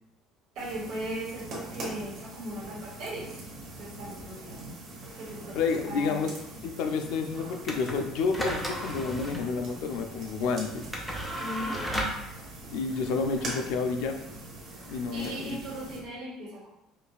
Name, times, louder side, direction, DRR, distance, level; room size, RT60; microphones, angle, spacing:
voice 1, 0.5-3.4 3.8-4.6 5.2-6.3 11.4-11.9 15.1-16.7, right 1 dB, 60° right, -5 dB, 1.3 m, -38 dB
sound 1, 0.6-16.0, right 2 dB, 45° right, 1.0 m, -43 dB
voice 2, 5.6-6.3 6.6-10.8 12.7-14.2 14.9-15.6, left 5 dB, 70° left, 5 dB, 0.4 m, -30 dB
sound 2, 7.6-16.1, equal, 5° left, 0.4 m, -37 dB
5.1 x 2.3 x 2.3 m, 0.88 s
cardioid pair, 170°, 0 cm